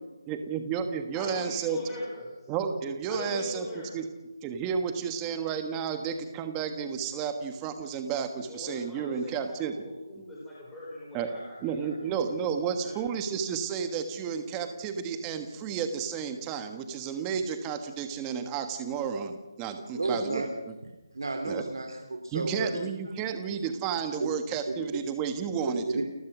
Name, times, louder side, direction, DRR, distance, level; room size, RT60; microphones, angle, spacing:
voice 1, 0.3-1.8 2.5-3.6 3.9-4.0 4.4-9.7 11.1-11.3 11.6-20.7 21.4-21.6 22.3-25.8, right 7 dB, 10° right, 7 dB, 1.4 m, -32 dB
voice 2, 1.1-2.5 3.1-4.0 8.4-12.9, left 1 dB, 5° left, -8 dB, 5.2 m, -41 dB
voice 3, 19.9-20.5 21.1-22.7 24.2-24.3 24.7-25.0 25.6-26.0, right 2 dB, 75° right, 3 dB, 3.1 m, -32 dB
29.0 x 15.0 x 6.2 m, 1.1 s
figure-of-eight pair, 170°, 2 cm